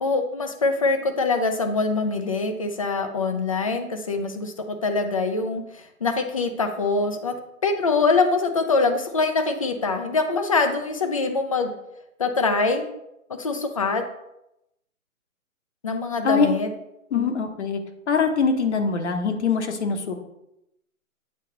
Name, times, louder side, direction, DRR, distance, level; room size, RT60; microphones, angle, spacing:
voice 1, 0.0-7.3 7.6-11.7 12.2-12.8 13.4-14.0 15.8-16.7 17.1-17.3, left 3 dB, 25° left, 7 dB, 0.5 m, -24 dB
voice 2, 17.1-17.8 18.1-20.1, left 5 dB, 55° left, 6 dB, 1.1 m, -23 dB
8.4 x 3.9 x 3.9 m, 0.85 s
hypercardioid pair, 145°, 42 cm